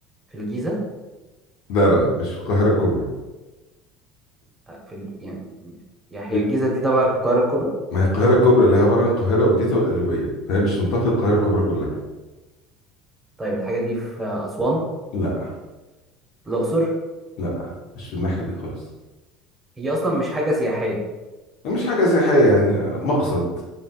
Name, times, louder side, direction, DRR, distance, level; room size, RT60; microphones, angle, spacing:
voice 1, 0.3-0.8 4.7-5.8 6.1-7.7 11.4-11.5 13.4-14.8 16.5-16.9 19.8-21.0, right 1 dB, 15° right, -2 dB, 1.5 m, -24 dB
voice 2, 1.7-3.0 6.3-6.4 7.9-11.9 15.1-15.5 17.4-17.7 17.9-18.5 21.6-23.5, equal, 60° left, -3 dB, 1.3 m, -19 dB
5.3 x 3.7 x 2.4 m, 1.1 s
hypercardioid pair, 70°, 0 cm